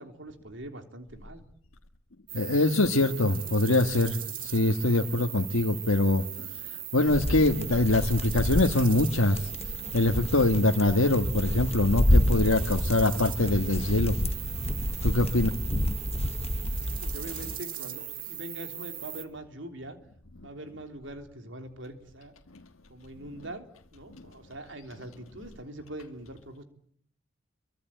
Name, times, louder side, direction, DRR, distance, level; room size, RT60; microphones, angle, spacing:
voice 1, 0.0-1.4 13.1-13.3 16.9-20.0 20.4-22.3 22.9-23.7 23.9-26.6, right 1 dB, 65° right, 3.6 m, -43 dB
voice 2, 2.3-9.5 9.9-14.2 15.0-15.5, left 2 dB, 85° left, 1.5 m, -24 dB
sound 1, 2.3-19.2, right 11 dB, 40° right, 2.6 m, -39 dB
sound 2, 7.1-17.6, left 1 dB, 30° left, 1.2 m, -29 dB
26.5 x 24.0 x 9.1 m
head